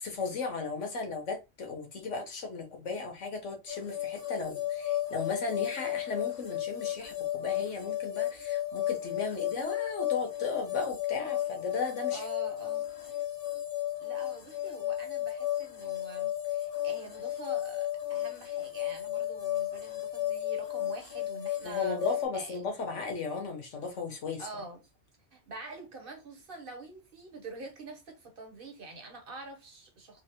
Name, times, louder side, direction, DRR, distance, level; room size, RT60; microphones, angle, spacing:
voice 1, 0.0-12.2 21.6-24.4, left 4 dB, 85° left, 1.3 m, -36 dB
sound 1, 3.7-22.2, left 13 dB, 35° left, 0.8 m, -34 dB
voice 2, 12.1-12.9 14.0-22.0 22.3-22.6 24.4-24.9 25.3-30.2, right 2 dB, 55° right, 0.9 m, -46 dB
3.8 x 2.0 x 2.8 m
omnidirectional pair, 1.2 m